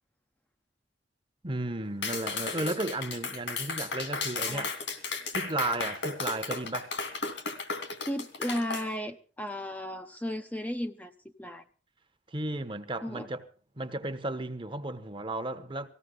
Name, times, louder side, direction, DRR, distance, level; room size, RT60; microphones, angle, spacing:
voice 1, 1.4-4.7 5.3-6.9 12.3-13.4 13.8-15.9, right 2 dB, 25° right, 1.2 m, -34 dB
Clapping, 2.0-8.9, left 4 dB, 75° left, 2.9 m, -34 dB
voice 2, 8.0-11.1 11.4-11.6 13.0-13.3, equal, 10° left, 0.8 m, -35 dB
19.0 x 16.0 x 3.9 m
head